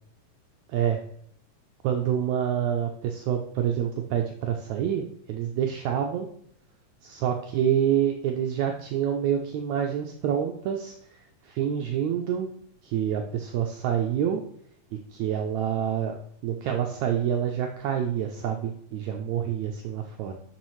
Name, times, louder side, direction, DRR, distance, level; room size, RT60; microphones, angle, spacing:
voice 1, 0.7-1.0 1.8-6.3 7.0-10.9 11.4-12.5 12.8-14.4 14.9-16.2 16.4-20.3, right 9 dB, 85° right, 3 dB, 1.6 m, -27 dB
11.5 x 5.5 x 3.1 m, 0.66 s
omnidirectional pair, 4.0 m